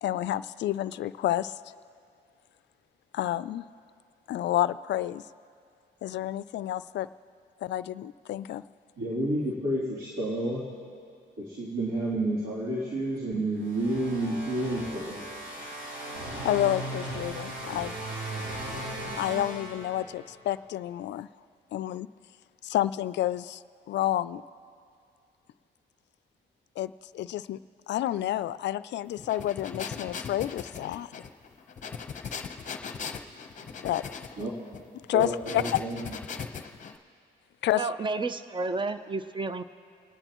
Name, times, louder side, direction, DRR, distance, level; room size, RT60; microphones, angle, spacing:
voice 1, 0.0-1.6 3.1-3.6 4.3-5.2 6.0-7.1 7.6-8.6 16.4-17.9 19.2-21.3 21.7-22.1 22.6-23.6 23.9-24.4 26.8-27.6 27.9-31.1 33.8-34.0 35.1-35.6 37.6-37.8, left 13 dB, 65° left, 16 dB, 0.4 m, -29 dB
voice 2, 9.0-10.6 11.4-15.2 33.6-33.7 34.4-34.5 35.1-36.2, right 1 dB, 90° right, -9 dB, 3.2 m, -30 dB
sound 1, 13.6-20.3, right 1 dB, 65° right, 3.8 m, -37 dB
sound 2, 29.2-37.0, left 6 dB, 40° left, 0.8 m, -39 dB
voice 3, 37.7-39.6, right 3 dB, 25° right, 11 dB, 0.6 m, -31 dB
29.5 x 9.9 x 3.0 m, 2.3 s
cardioid pair, 90°, 20 cm